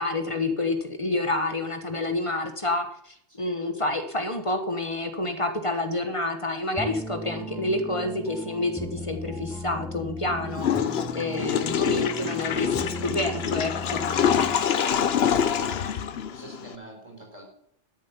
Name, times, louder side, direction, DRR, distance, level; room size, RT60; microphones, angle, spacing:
voice 1, 0.0-10.7 11.1-14.1, left 2 dB, 25° left, 6 dB, 1.1 m, -28 dB
sound 1, 6.8-14.9, equal, 5° right, 0.9 m, -37 dB
Water / Toilet flush, 10.6-16.8, left 8 dB, 60° left, 0.9 m, -26 dB
voice 2, 11.0-11.3 14.7-17.4, right 1 dB, 30° right, 1 dB, 4.2 m, -45 dB
13.0 x 7.3 x 7.1 m, 0.68 s
omnidirectional pair, 1.3 m